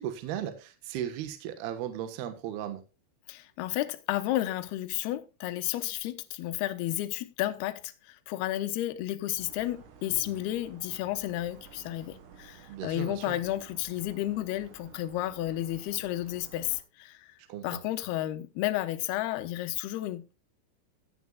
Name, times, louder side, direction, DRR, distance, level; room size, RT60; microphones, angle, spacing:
voice 1, 0.0-2.8 12.7-13.4 17.5-17.8, right 10 dB, 65° right, 2.8 m, -36 dB
voice 2, 3.3-17.3 17.6-20.3, left 14 dB, 75° left, 2.5 m, -32 dB
sound 1, 9.4-16.8, right 6 dB, 85° right, 4.9 m, -52 dB
16.0 x 10.5 x 2.4 m
omnidirectional pair, 5.8 m